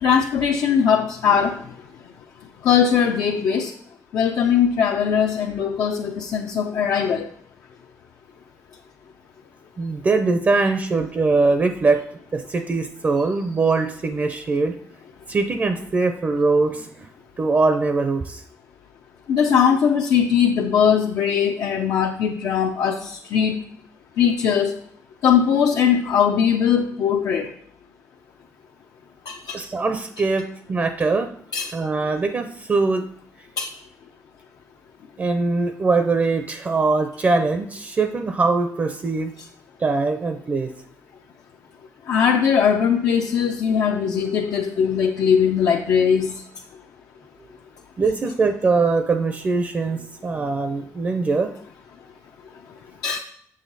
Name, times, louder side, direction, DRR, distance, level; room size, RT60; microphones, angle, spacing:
voice 1, 0.0-1.6 2.6-3.7 4.1-7.3 19.3-23.6 24.2-24.7 25.2-27.5 29.3-29.6 31.5-31.7 33.6-33.7 42.1-46.3 53.0-53.2, left 7 dB, 70° left, 1 dB, 0.6 m, -20 dB
voice 2, 9.8-12.0 12.3-14.7 15.3-17.1 17.4-18.4 29.5-31.3 31.7-33.0 35.2-39.3 39.8-40.7 48.0-51.5, right 3 dB, 30° right, 7 dB, 0.5 m, -22 dB
7.4 x 6.4 x 4.0 m, 0.64 s
cardioid pair, 135°, 6 cm